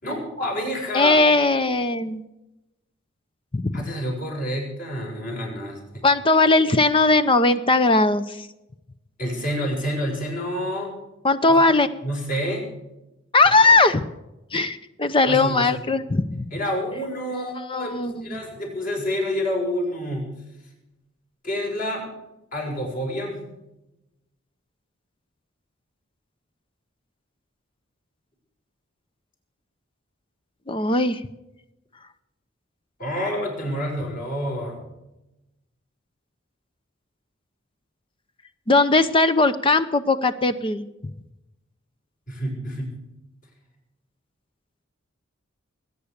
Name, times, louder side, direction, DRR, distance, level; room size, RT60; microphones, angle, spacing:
voice 1, 0.0-1.2 3.7-6.0 9.2-10.9 12.0-12.7 13.4-13.7 15.3-15.8 16.5-20.3 21.4-22.1 22.5-23.5 33.0-34.8 42.3-43.0, equal, 40° left, -1 dB, 6.1 m, -28 dB
voice 2, 0.9-2.2 3.5-3.8 6.0-8.5 11.2-11.9 13.3-14.0 14.5-16.4 17.3-18.4 30.7-31.2 38.7-40.9, left 3 dB, 25° left, 11 dB, 0.6 m, -19 dB
21.0 x 9.9 x 6.6 m, 0.94 s
head